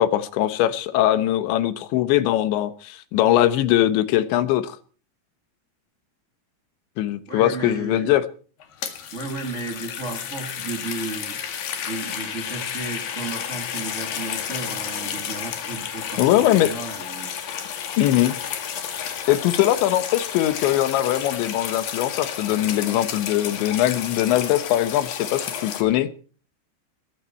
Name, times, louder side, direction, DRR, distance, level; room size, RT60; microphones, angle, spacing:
voice 1, 0.0-4.8 7.0-8.3 16.2-16.7 18.0-18.4 19.3-26.1, left 13 dB, 85° left, 3.4 m, -21 dB
voice 2, 7.3-8.1 9.1-11.4 11.8-17.3, right 3 dB, 50° right, 0.8 m, -34 dB
sound 1, 8.6-25.8, left 8 dB, 60° left, 3.3 m, -32 dB
21.0 x 14.0 x 4.4 m
omnidirectional pair, 5.1 m